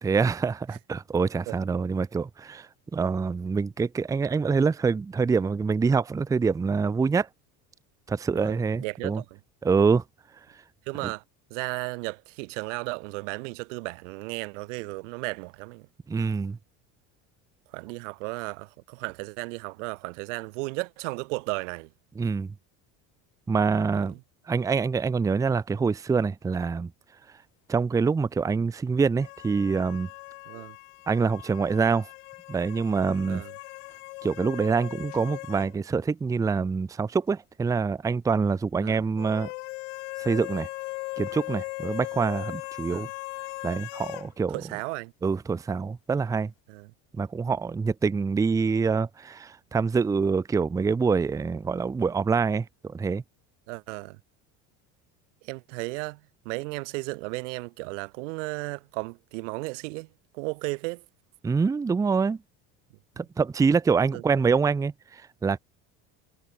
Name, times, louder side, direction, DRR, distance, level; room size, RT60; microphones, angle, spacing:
voice 1, 0.0-7.3 8.1-9.2 9.6-10.0 11.0-11.1 16.1-16.6 22.2-22.5 23.5-24.1 24.5-26.9 27.7-30.1 31.1-32.1 32.5-33.4 34.2-39.5 40.2-40.7 41.2-43.1 43.6-44.6 45.2-46.5 47.2-53.2 61.4-62.4 63.2-65.6, right 5 dB, 10° right, 0.6 m, -25 dB
voice 2, 8.3-9.4 10.9-11.2 11.5-15.9 17.7-21.9 23.9-24.2 30.5-30.8 33.3-33.5 38.8-39.0 42.8-43.1 44.5-45.1 46.7-46.9 53.7-54.2 55.4-56.2 56.5-60.1 60.3-61.0 63.2-63.3 64.1-64.2, right 27 dB, 90° right, 1.9 m, -34 dB
sound 1, 29.2-35.7 36.0-36.1 39.2-44.3, left 28 dB, 90° left, 2.8 m, -39 dB
cardioid pair, 160°, 36 cm